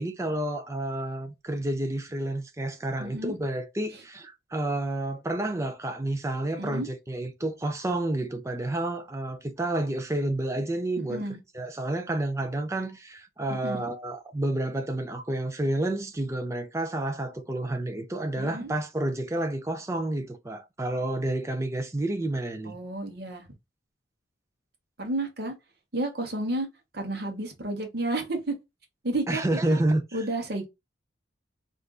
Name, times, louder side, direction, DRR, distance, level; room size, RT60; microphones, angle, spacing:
voice 1, 0.0-11.3 11.5-22.8 29.3-30.2, right 1 dB, 15° right, 0.4 m, -30 dB
voice 2, 3.0-3.3 6.6-6.9 11.0-11.4 13.5-13.8 18.4-18.7 22.6-23.4 25.0-25.5 25.9-26.7 26.9-28.5 29.0-29.8 30.1-30.7, right 2 dB, 55° right, 1.0 m, -31 dB
3.6 x 2.5 x 2.3 m
head